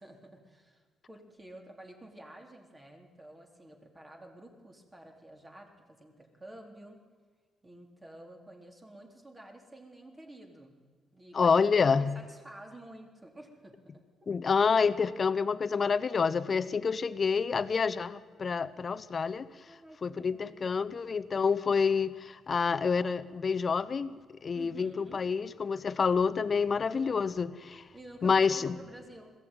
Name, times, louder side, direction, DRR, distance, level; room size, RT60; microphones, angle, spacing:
voice 1, 0.0-7.0 7.6-10.8 11.1-11.5 11.8-14.0 16.6-16.8 19.6-20.6 24.5-25.3 26.9-27.3 27.9-29.3, right 1 dB, 20° right, 2 dB, 3.8 m, -51 dB
voice 2, 11.3-12.2 14.3-19.5 20.0-27.8 28.2-28.8, left 5 dB, 40° left, 14 dB, 1.0 m, -28 dB
20.5 x 16.0 x 9.2 m, 1.5 s
cardioid pair, 90°, 0 cm